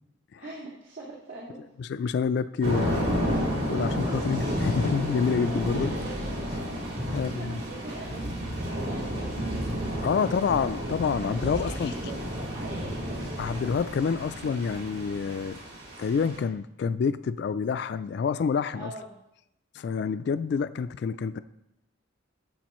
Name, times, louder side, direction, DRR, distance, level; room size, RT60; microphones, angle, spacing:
voice 1, 0.4-1.6 5.4-6.3 6.7-9.7 11.2-13.6 18.7-19.2, right 2 dB, 85° right, -7 dB, 2.3 m, -43 dB
voice 2, 1.8-5.9 7.1-7.6 10.0-11.9 13.4-15.6 16.0-18.9 19.7-21.4, left 6 dB, 55° left, 13 dB, 0.3 m, -28 dB
Thunder / Rain, 2.6-16.4, equal, 70° right, 3.1 m, -31 dB
13.0 x 7.7 x 3.1 m, 0.85 s
head